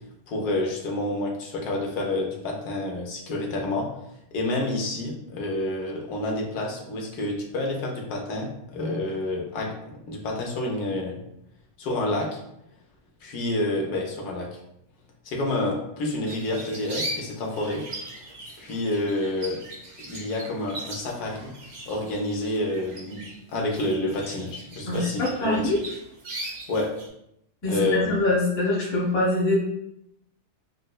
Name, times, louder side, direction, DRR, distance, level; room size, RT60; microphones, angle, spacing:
voice 1, 0.3-3.9 4.3-11.2 11.8-12.4 13.2-14.6 15.2-17.8 18.6-19.6 20.0-21.5 21.9-23.2 23.5-25.7 26.7-26.9 27.7-28.0, left 2 dB, 80° left, -1 dB, 1.3 m, -28 dB
sound 1, 16.2-27.1, right 1 dB, 85° right, 0.3 m, -39 dB
voice 2, 24.9-25.8 27.6-29.6, left 2 dB, 65° left, -7 dB, 1.9 m, -24 dB
5.0 x 2.0 x 2.2 m, 0.78 s
omnidirectional pair, 1.7 m